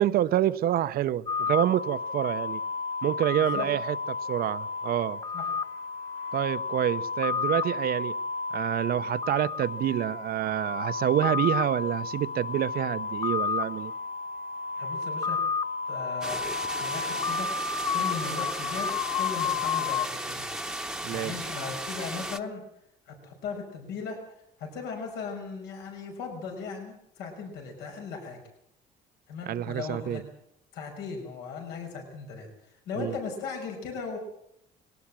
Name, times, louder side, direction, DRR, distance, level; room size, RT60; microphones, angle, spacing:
voice 1, 0.0-2.6 3.0-5.2 6.3-8.2 8.5-13.9 21.0-21.4 29.5-30.2 33.0-33.1, right 12 dB, 65° right, 0.9 m, -27 dB
sound 1, 1.3-20.1, left 5 dB, 30° left, 1.7 m, -31 dB
voice 2, 3.3-3.7 5.3-5.6 14.8-15.4 15.9-17.5 17.9-20.7 21.1-22.6 23.1-24.2 24.6-28.4 29.3-30.2 30.7-32.5 32.9-34.2, left 5 dB, 85° left, 5.7 m, -37 dB
sound 2, 16.2-22.4, right 1 dB, 5° right, 1.1 m, -36 dB
20.5 x 18.0 x 7.6 m
cardioid pair, 110°, 17 cm